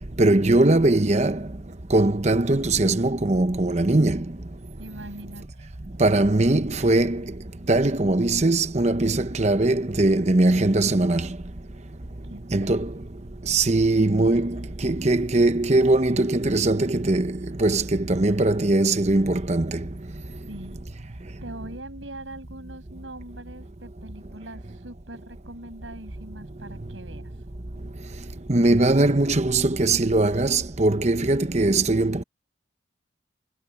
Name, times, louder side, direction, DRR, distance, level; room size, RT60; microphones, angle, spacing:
voice 1, 0.2-1.5 1.9-4.4 6.0-7.4 7.7-11.4 12.5-12.9 13.4-19.9 28.5-32.2, right 2 dB, 35° right, 1.0 m, -21 dB
voice 2, 4.8-5.7 12.2-12.9 20.5-27.5, right 1 dB, 80° right, 7.6 m, -42 dB
head